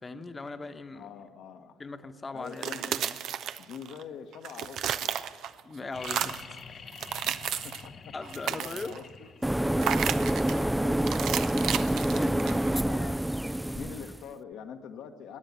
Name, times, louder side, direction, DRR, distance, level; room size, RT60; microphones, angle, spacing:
voice 1, 0.0-1.1 1.8-3.2 5.6-6.6 8.1-9.0 12.1-12.6 12.9-13.1, left 3 dB, 30° left, 8 dB, 1.1 m, -40 dB
voice 2, 0.9-1.8 2.3-2.9 3.6-5.2 7.2-7.4 7.6-8.1 8.5-9.3 10.1-11.4 12.8-13.3 13.7-15.4, left 7 dB, 65° left, 7 dB, 1.1 m, -45 dB
sound 1, 2.5-4.0 4.3-5.6 6.0-6.5 6.9-7.9 8.2-9.0 9.8-10.6 11.1-12.8, right 9 dB, 65° right, 0.5 m, -33 dB
sound 2, 5.9-9.7 11.4-11.5, left 6 dB, 50° left, 0.7 m, -46 dB
sound 3, 9.4-14.2, right 1 dB, 5° right, 0.3 m, -27 dB
16.0 x 10.5 x 8.2 m, 2.1 s
hypercardioid pair, 50°, 0 cm